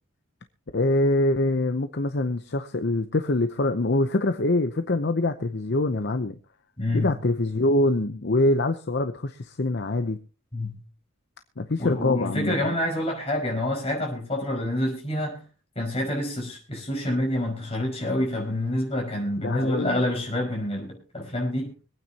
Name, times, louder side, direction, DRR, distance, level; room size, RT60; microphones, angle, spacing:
voice 1, 0.7-6.4 6.9-10.2 11.6-12.6 19.4-19.9, left 2 dB, 50° left, 8 dB, 0.7 m, -24 dB
voice 2, 6.8-7.2 10.5-10.8 11.8-15.4 15.8-21.7, left 1 dB, 30° left, 0 dB, 5.3 m, -27 dB
25.0 x 9.2 x 2.9 m, 0.35 s
head